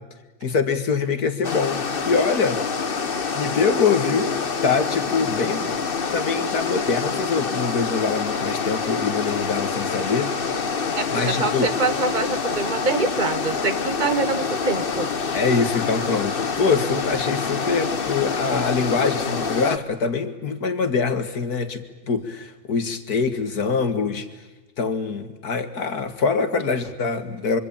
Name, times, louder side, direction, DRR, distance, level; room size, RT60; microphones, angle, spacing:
voice 1, 0.4-2.6 3.0-4.3 4.6-5.8 6.1-10.3 11.1-11.7 15.3-24.3 24.8-27.6, left 5 dB, 80° left, 10 dB, 2.5 m, -24 dB
sound 1, 1.4-19.8, left 5 dB, 40° left, 1.3 m, -26 dB
voice 2, 10.9-15.1, right 4 dB, 30° right, 12 dB, 1.5 m, -25 dB
25.5 x 25.0 x 8.9 m, 1.2 s
omnidirectional pair, 1.6 m